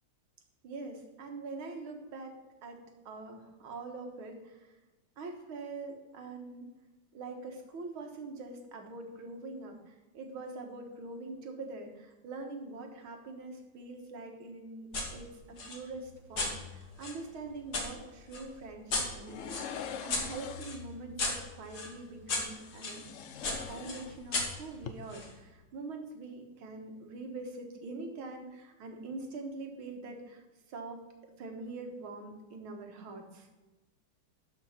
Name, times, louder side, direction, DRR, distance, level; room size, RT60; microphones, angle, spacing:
voice 1, 0.6-4.8 5.2-6.7 7.1-23.1 23.5-33.5, right 3 dB, 75° right, 3 dB, 2.2 m, -44 dB
sound 1, 14.9-15.1 15.6-17.9 18.3-23.0 23.4-25.3, left 2 dB, 50° left, 2.4 m, -36 dB
sound 2, 19.3-20.9 22.5-24.5 24.7-24.9, left 7 dB, 85° left, 0.6 m, -43 dB
12.5 x 5.1 x 5.7 m, 1.2 s
omnidirectional pair, 2.3 m